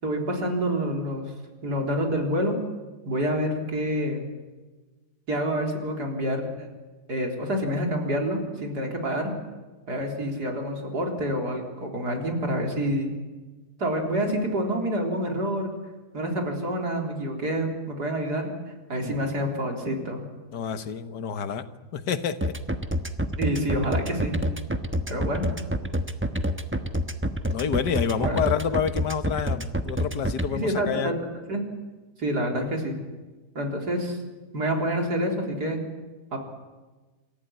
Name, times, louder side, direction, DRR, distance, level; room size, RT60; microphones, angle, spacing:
voice 1, 0.0-1.3 1.6-2.6 3.1-4.3 5.3-6.7 7.1-9.3 9.9-13.1 13.8-15.7 16.1-18.5 18.9-20.2 23.4-24.4 25.1-25.5 28.2-28.4 30.5-31.2 31.5-31.6 32.2-33.0 33.5-34.2 34.5-35.8 36.3-36.4, equal, 70° right, 2 dB, 4.3 m, -27 dB
voice 2, 20.5-21.7 21.9-22.6 27.5-31.1, left 7 dB, 80° left, 11 dB, 1.8 m, -28 dB
sound 1, 22.4-30.5, equal, 10° right, 0.9 m, -27 dB
27.5 x 15.0 x 9.9 m, 1.3 s
omnidirectional pair, 1.8 m